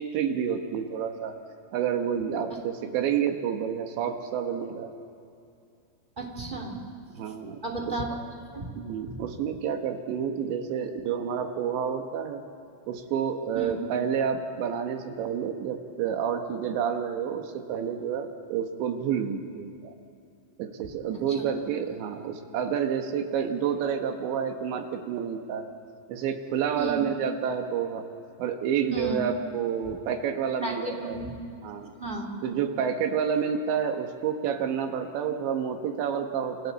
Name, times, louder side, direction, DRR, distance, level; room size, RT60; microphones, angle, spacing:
voice 1, 0.0-1.4 1.7-4.9 7.1-7.6 7.8-8.0 8.8-12.4 12.9-19.9 20.6-25.7 26.1-28.1 28.4-31.2 31.6-31.9 32.4-36.7, right 7 dB, 75° right, 5 dB, 3.5 m, -29 dB
voice 2, 6.2-6.8 7.6-8.1 8.5-8.7 9.1-9.2 13.5-13.7 21.1-21.2 21.5-21.6 26.8-27.1 28.9-29.3 30.6-31.4 32.0-32.4, right 2 dB, 15° right, -1 dB, 1.8 m, -33 dB
29.0 x 28.0 x 4.2 m, 2.5 s
omnidirectional pair, 5.4 m